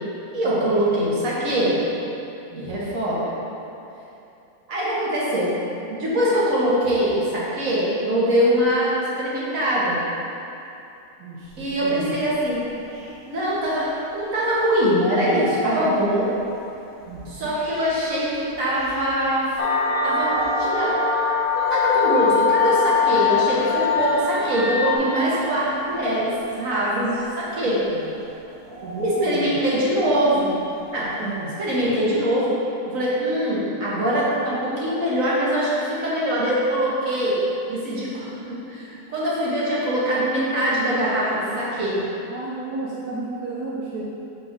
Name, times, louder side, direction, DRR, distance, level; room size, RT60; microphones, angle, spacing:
voice 1, 0.3-1.8 2.5-3.3 4.7-5.5 5.9-10.0 11.6-12.6 13.3-16.3 17.3-19.6 20.0-21.0 21.5-27.8 29.0-30.6 30.9-31.1 31.6-32.5 32.8-37.4 37.7-42.0, equal, 60° right, -7 dB, 1.7 m, -23 dB
voice 2, 2.5-2.9 11.2-12.2 17.1-17.5 26.9-27.3 27.9-28.0 28.8-29.7 31.2-31.5 31.8-32.0 42.3-44.0, right 2 dB, 80° right, -6 dB, 1.2 m, -33 dB
sound 1, 11.4-31.3, right 1 dB, 40° right, 1.5 m, -38 dB
sound 2, 19.6-25.0, left 5 dB, 40° left, 0.4 m, -22 dB
6.1 x 5.1 x 3.6 m, 2.8 s
omnidirectional pair, 1.7 m